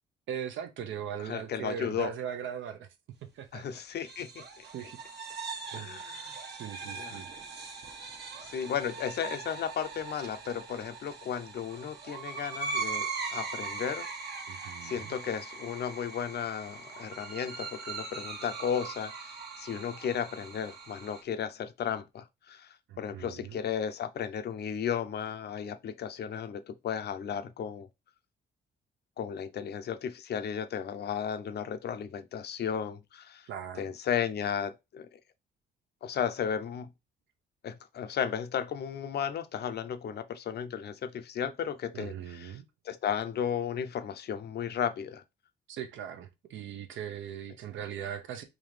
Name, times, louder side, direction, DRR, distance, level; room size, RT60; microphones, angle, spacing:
voice 1, 0.3-2.9 3.3-3.6 4.7-5.0 5.7-6.0 6.5-7.3 14.5-15.1 22.9-23.6 33.5-33.8 41.9-42.6 45.7-48.4, right 9 dB, 75° right, 0.8 m, -39 dB
voice 2, 1.2-2.1 3.5-4.6 5.7-6.3 7.0-7.2 8.4-14.1 14.8-27.9 29.2-33.5 33.8-35.2 36.0-36.9 37.6-42.5 42.8-45.2, left 8 dB, 55° left, 0.6 m, -34 dB
sound 1, 3.9-21.2, right 4 dB, 55° right, 1.0 m, -40 dB
3.7 x 2.7 x 3.2 m
cardioid pair, 90°, 20 cm